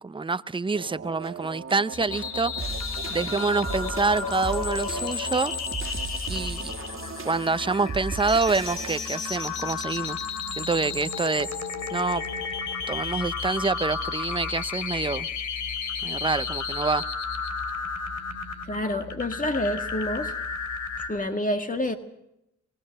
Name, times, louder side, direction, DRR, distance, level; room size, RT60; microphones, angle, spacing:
voice 1, 0.0-2.5 3.1-5.5 6.3-6.7 7.2-10.2 10.6-11.5 11.9-12.2 12.9-15.3 16.0-17.0, right 4 dB, 15° right, 14 dB, 0.8 m, -26 dB
sound 1, 0.7-10.0, right 5 dB, 45° right, 1.9 m, -37 dB
sound 2, 1.9-21.1, left 5 dB, 85° left, 3.0 m, -32 dB
voice 2, 18.7-20.3 21.1-22.0, left 1 dB, 25° left, 7 dB, 1.8 m, -28 dB
24.5 x 18.0 x 6.6 m, 0.83 s
cardioid pair, 60°, 29 cm